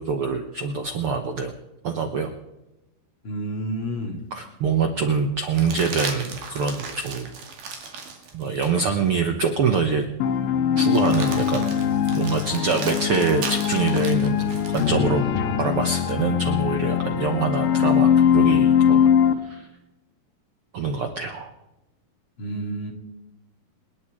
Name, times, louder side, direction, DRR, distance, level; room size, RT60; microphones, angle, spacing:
voice 1, 0.0-1.5 1.8-2.3 4.3-7.3 8.3-10.0 10.8-11.7 12.1-15.2 15.6-19.1 19.4-19.7 20.7-21.5, right 5 dB, 80° right, 6 dB, 1.2 m, -25 dB
voice 2, 3.2-4.2 22.4-22.9, right 1 dB, 35° left, 1 dB, 2.7 m, -30 dB
sound 1, 3.9-4.0 5.5-8.9 9.5-9.6 10.9-15.0 17.1-18.0, right 5 dB, 60° right, 3.7 m, -36 dB
sound 2, 10.2-19.3, left 8 dB, 85° left, 3.1 m, -21 dB
sound 3, 14.6-15.8, left 3 dB, 60° left, 7.7 m, -32 dB
28.0 x 10.5 x 4.9 m, 0.98 s
omnidirectional pair, 4.2 m